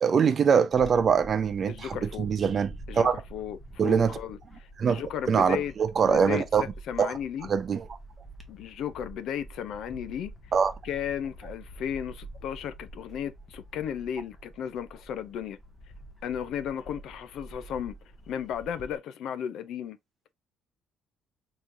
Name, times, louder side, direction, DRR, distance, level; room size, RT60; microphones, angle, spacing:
voice 1, 0.0-3.2 3.8-4.2 4.8-6.6 7.0-7.1 7.5-7.8 10.5-10.7, right 6 dB, 35° right, 0.5 m, -23 dB
Bird / Wind, 0.7-19.0, right 1 dB, 15° left, 0.8 m, -47 dB
voice 2, 1.7-2.3 2.9-5.7 6.0-7.5 8.5-10.3 10.8-15.6 16.2-17.9 18.3-20.0, left 9 dB, 65° left, 0.4 m, -35 dB
3.6 x 3.0 x 2.5 m
cardioid pair, 140°, 0 cm